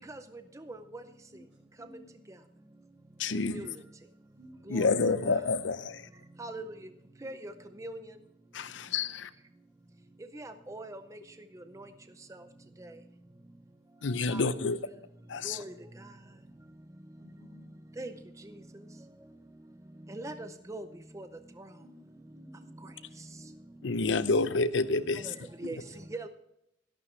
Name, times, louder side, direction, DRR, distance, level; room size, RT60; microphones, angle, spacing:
voice 1, 1.8-2.1 4.3-4.9 8.8-8.9 17.2-17.7 21.8-22.9, equal, 90° right, 5.2 m, -56 dB
voice 2, 3.2-3.6 4.7-6.0 8.5-9.3 14.0-14.8 15.3-15.6 23.8-25.3, left 3 dB, 75° left, 0.7 m, -28 dB
voice 3, 4.7-5.0 6.4-6.6 7.2-7.5 7.8-8.0 10.4-11.0 14.3-14.4 15.4-15.7 18.0-18.1 20.1-20.8 21.1-21.3 25.6-25.8 26.1-26.3, right 2 dB, 15° right, 0.5 m, -39 dB
12.5 x 11.5 x 3.2 m
head